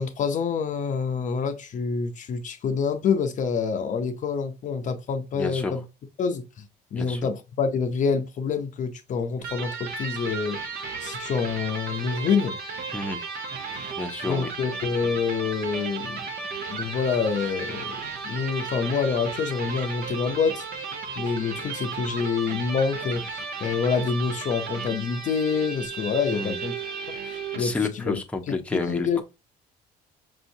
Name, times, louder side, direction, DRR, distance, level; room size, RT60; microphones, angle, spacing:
voice 1, 0.0-5.8 6.2-6.6 6.9-10.6 11.0-12.6 14.3-16.2 16.7-18.0 18.2-20.6 21.2-26.7 27.6-28.2 28.7-29.2, left 5 dB, 50° left, 0.5 m, -27 dB
voice 2, 5.3-5.8 6.9-7.3 12.9-13.2 14.0-14.5 26.3-26.6 27.6-29.2, left 3 dB, 5° left, 0.6 m, -30 dB
Electric guitar, 9.4-27.8, right 4 dB, 65° right, 0.9 m, -34 dB
5.4 x 2.7 x 2.7 m
cardioid pair, 110°, 17 cm